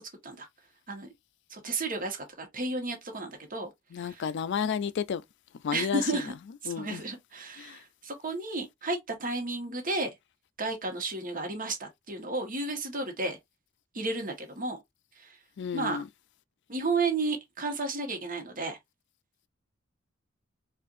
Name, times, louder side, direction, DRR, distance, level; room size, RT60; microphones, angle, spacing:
voice 1, 1.5-3.7 4.0-4.3 5.7-10.1 10.6-13.4 13.9-14.8 15.2-15.4 15.7-16.0 16.7-18.8, right 3 dB, 45° right, 1.2 m, -33 dB
voice 2, 3.9-5.2 5.6-6.0 6.7-7.0 7.6-7.7 15.6-16.0, left 7 dB, 60° left, 0.4 m, -31 dB
4.4 x 2.5 x 2.5 m
head